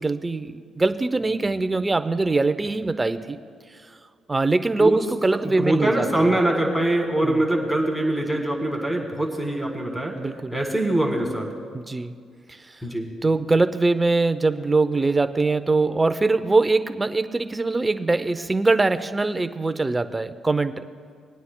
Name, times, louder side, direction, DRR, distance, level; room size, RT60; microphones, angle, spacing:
voice 1, 0.0-3.4 4.3-6.3 7.2-7.4 10.1-10.5 11.7-12.1 12.5-12.6 13.2-20.8, right 3 dB, 20° right, 10 dB, 0.5 m, -22 dB
voice 2, 5.4-10.2 10.5-11.5 12.8-13.1, right 1 dB, 5° left, 1 dB, 2.0 m, -23 dB
24.5 x 9.4 x 2.2 m, 2.2 s
cardioid pair, 90°, 0 cm